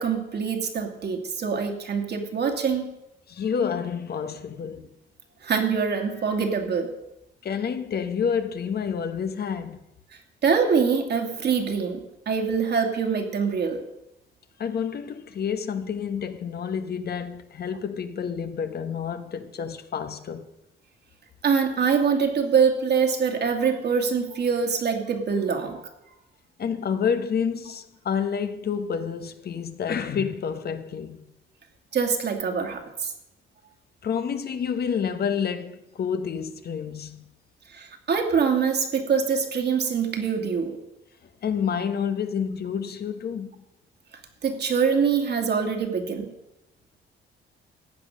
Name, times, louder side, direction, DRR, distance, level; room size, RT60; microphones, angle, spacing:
voice 1, 0.0-3.0 5.4-6.9 10.1-13.8 21.4-25.9 31.9-33.1 37.7-40.8 44.4-46.3, right 6 dB, 55° right, 2.5 m, -24 dB
voice 2, 3.3-4.9 7.4-9.8 14.6-20.4 26.6-31.2 34.0-37.3 41.4-43.6, left 7 dB, 55° left, 1.2 m, -29 dB
14.5 x 8.8 x 6.5 m
cardioid pair, 90°, 20 cm